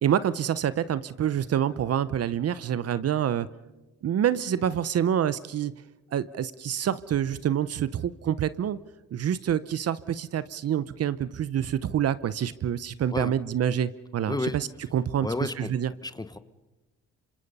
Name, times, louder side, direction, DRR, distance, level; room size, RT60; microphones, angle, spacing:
voice 1, 0.0-3.5 4.0-5.7 6.1-8.8 9.1-14.7 14.9-15.3 15.6-15.9, right 9 dB, 55° right, 16 dB, 0.8 m, -27 dB
voice 2, 14.3-14.6 15.2-15.7 16.0-16.4, left 2 dB, 15° left, 12 dB, 1.0 m, -31 dB
26.5 x 25.5 x 5.5 m, 1.1 s
cardioid pair, 90°, 30 cm